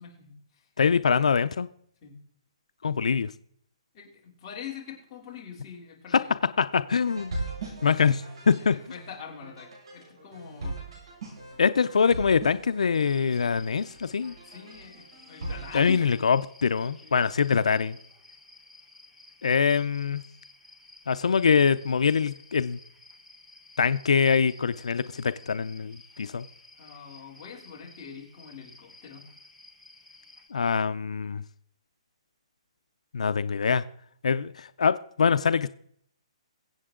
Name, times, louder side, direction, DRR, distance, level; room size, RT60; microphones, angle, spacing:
voice 1, 0.0-0.7 2.0-2.2 3.9-6.3 8.6-10.8 14.5-16.1 17.0-17.2 26.8-29.2, left 7 dB, 20° left, 3.1 m, -43 dB
voice 2, 0.8-1.7 2.8-3.3 6.1-6.2 6.6-7.4 7.8-8.8 11.6-14.3 15.7-18.0 19.4-20.2 21.1-22.8 23.8-26.5 30.5-31.4 33.1-33.8 34.2-35.7, left 6 dB, 85° left, 0.6 m, -24 dB
sound 1, 7.0-15.9, right 2 dB, 50° right, 5.8 m, -40 dB
sound 2, 12.9-30.5, left 3 dB, ahead, 0.9 m, -54 dB
22.5 x 7.9 x 3.7 m
hypercardioid pair, 175°, 3 cm